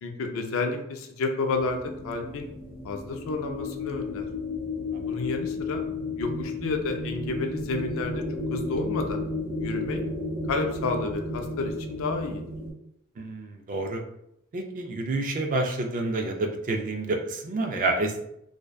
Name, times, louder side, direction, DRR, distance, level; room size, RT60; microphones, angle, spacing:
voice 1, 0.0-2.5 2.8-4.3 4.9-5.8 6.2-8.2 8.5-9.2 9.6-10.0 10.5-12.4, left 3 dB, 65° left, 4 dB, 0.4 m, -30 dB
sound 1, 1.5-12.7, left 2 dB, 10° right, 1.2 m, -33 dB
voice 2, 13.2-14.0 14.5-18.2, right 2 dB, 40° right, 4 dB, 0.3 m, -29 dB
2.6 x 2.1 x 2.2 m, 0.78 s
head